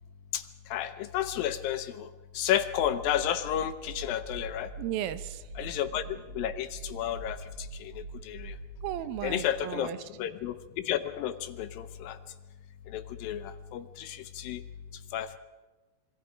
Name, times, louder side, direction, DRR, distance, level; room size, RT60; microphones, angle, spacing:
voice 1, 0.7-2.0 2.4-4.7 5.6-6.0 6.4-7.4 8.3-8.5 9.2-9.9 10.2-10.6 10.9-12.2 12.9-13.4 13.7-14.6 15.1-15.4, left 11 dB, 75° left, 11 dB, 2.4 m, -31 dB
sound 1, 2.8-9.6, right 4 dB, 45° right, 2.6 m, -44 dB
voice 2, 4.8-5.4 8.8-10.0, right 12 dB, 80° right, 13 dB, 2.6 m, -34 dB
26.5 x 22.0 x 5.1 m, 1.2 s
omnidirectional pair, 4.3 m